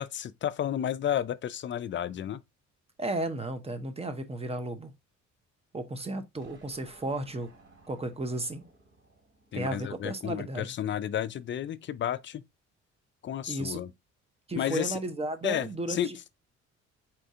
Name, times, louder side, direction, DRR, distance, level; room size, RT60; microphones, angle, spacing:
voice 1, 0.0-2.4 9.5-12.4 13.2-13.9 14.6-15.0 15.4-16.1, left 10 dB, 40° left, 0.4 m, -32 dB
voice 2, 3.0-4.9 5.7-7.5 7.9-8.6 9.5-10.7 13.5-13.8 14.5-16.2, right 2 dB, 20° right, 0.8 m, -34 dB
sound 1, 6.4-10.8, right 2 dB, 55° right, 3.1 m, -59 dB
4.4 x 2.6 x 3.6 m
supercardioid pair, 70°, 31 cm